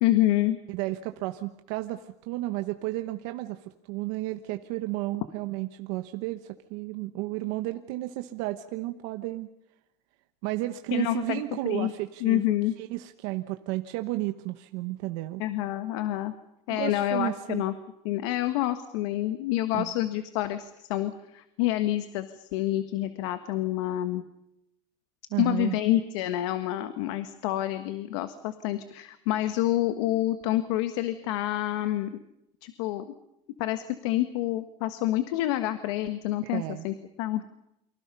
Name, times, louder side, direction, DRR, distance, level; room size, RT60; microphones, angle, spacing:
voice 1, 0.0-0.6 10.9-11.4 11.6-11.9 12.2-12.7 15.4-16.3 16.7-17.7 18.0-24.2 25.4-32.1 32.6-33.1 33.6-37.4, left 14 dB, 80° left, 9 dB, 1.5 m, -28 dB
voice 2, 0.7-9.5 10.4-15.4 16.7-17.6 19.7-20.0 25.3-25.8 36.4-36.9, right 17 dB, 75° right, 8 dB, 1.3 m, -33 dB
29.0 x 25.0 x 5.6 m, 0.83 s
supercardioid pair, 125°, 15 cm